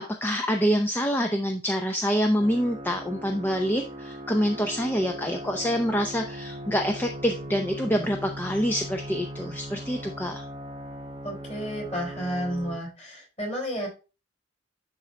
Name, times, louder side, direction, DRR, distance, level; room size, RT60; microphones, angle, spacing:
voice 1, 0.2-10.4, equal, 10° left, 3 dB, 0.6 m, -26 dB
sound 1, 2.4-12.8, equal, 25° right, 0.9 m, -39 dB
voice 2, 11.2-13.9, equal, 30° left, -2 dB, 4.2 m, -31 dB
11.0 x 3.9 x 3.2 m, 0.31 s
head